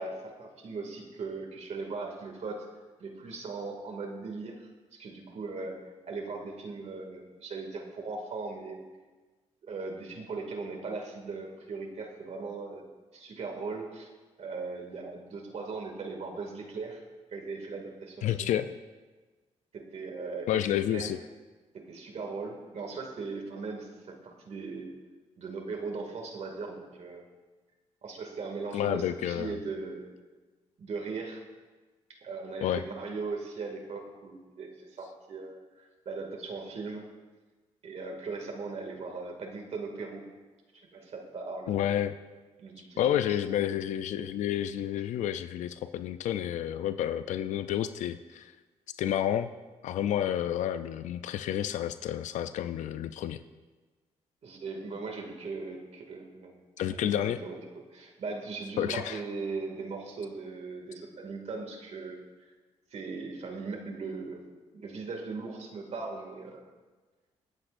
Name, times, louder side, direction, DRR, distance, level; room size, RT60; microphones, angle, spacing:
voice 1, 0.0-2.7 3.0-5.7 6.0-8.8 9.6-12.8 13.1-14.1 14.4-17.0 17.3-18.5 19.7-21.1 21.7-24.9 25.4-27.2 28.0-30.1 30.8-31.4 32.2-37.1 37.8-40.3 40.7-41.8 42.6-43.0 43.3-43.4 54.4-57.6 57.9-62.2 62.9-64.5 64.7-66.6, right 4 dB, 65° right, 2 dB, 2.3 m, -39 dB
voice 2, 18.2-18.7 20.5-21.2 28.7-29.5 32.6-32.8 41.7-42.2 43.0-48.5 49.0-49.5 49.8-53.4 56.8-57.4 58.8-59.2, left 11 dB, 85° left, 11 dB, 0.4 m, -30 dB
25.0 x 8.9 x 2.6 m, 1.3 s
cardioid pair, 70°, 12 cm